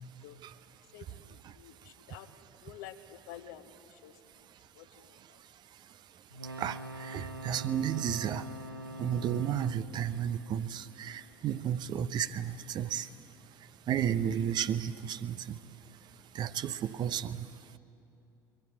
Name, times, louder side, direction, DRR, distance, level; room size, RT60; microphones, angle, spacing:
voice 1, 0.9-2.3 2.6-4.1 4.7-5.4 8.1-8.2, left 10 dB, 60° left, 8 dB, 1.3 m, -49 dB
sound 1, 6.3-11.4 14.1-14.3, equal, 90° right, 0.7 m, -45 dB
voice 2, 6.6-8.4 9.0-13.1 13.9-15.4 16.3-17.5, right 9 dB, 40° right, 13 dB, 0.9 m, -32 dB
28.5 x 23.0 x 8.8 m, 2.8 s
figure-of-eight pair, 60°, 11 cm